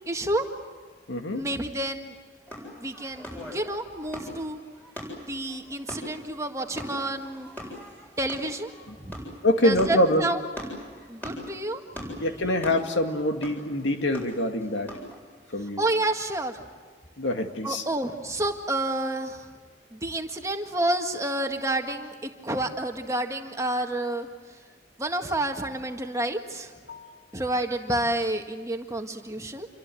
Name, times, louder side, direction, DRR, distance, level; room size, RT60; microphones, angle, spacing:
voice 1, 0.1-0.5 1.3-2.1 2.8-4.6 5.2-7.5 8.2-8.7 9.0-9.2 9.6-10.5 11.1-12.3 15.8-16.6 17.6-19.5 19.9-24.3 25.0-26.7 27.3-29.7, right 1 dB, 15° right, 4 dB, 1.8 m, -29 dB
voice 2, 1.1-1.5 9.4-10.3 12.2-14.9 15.5-15.8 17.2-17.8 26.9-27.1, left 1 dB, 80° left, 5 dB, 2.3 m, -25 dB
sound 1, 2.5-15.2, equal, 10° left, 7.8 m, -41 dB
28.0 x 23.5 x 7.9 m, 1.5 s
head